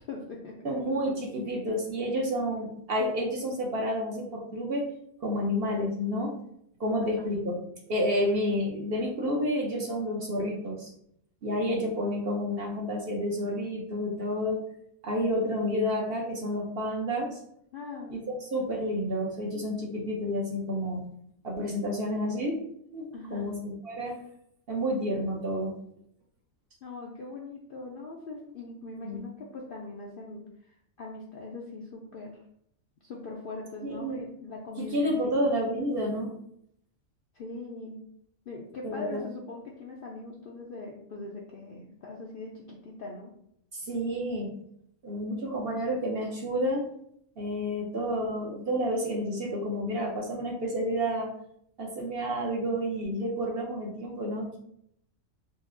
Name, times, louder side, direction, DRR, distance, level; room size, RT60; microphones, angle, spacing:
voice 1, 0.0-0.6 7.2-7.3 17.7-18.3 23.1-23.5 26.8-32.4 33.0-35.4 37.3-38.0 38.5-43.3, left 3 dB, 60° left, -2 dB, 0.5 m, -41 dB
voice 2, 0.6-4.8 5.2-6.3 6.8-7.6 7.9-10.9 11.4-14.6 15.0-17.4 18.1-21.1 21.4-22.6 22.9-24.2 24.7-25.7 29.0-29.2 33.8-34.2 34.8-36.3 38.8-39.2 43.7-44.5 45.0-46.8 47.4-51.3 51.8-54.6, equal, 55° right, -1 dB, 0.8 m, -30 dB
4.1 x 2.8 x 2.5 m, 0.70 s
omnidirectional pair, 1.4 m